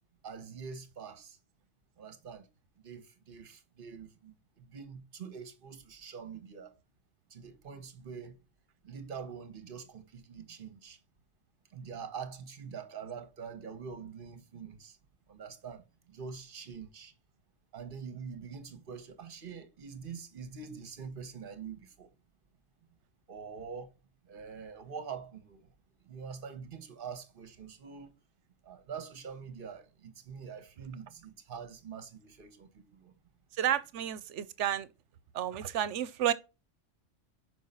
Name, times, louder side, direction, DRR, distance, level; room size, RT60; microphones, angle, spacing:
voice 1, 0.2-1.4 2.0-2.5 2.8-6.7 7.3-8.4 8.8-11.0 11.7-15.0 15.3-17.1 17.7-22.1 23.3-23.9 24.2-25.7 26.0-28.1 28.6-33.1, right 6 dB, 50° right, 1.2 m, -45 dB
voice 2, 33.5-34.9 35.3-36.3, right 11 dB, 75° right, 1.0 m, -31 dB
6.4 x 4.9 x 5.4 m
omnidirectional pair, 1.3 m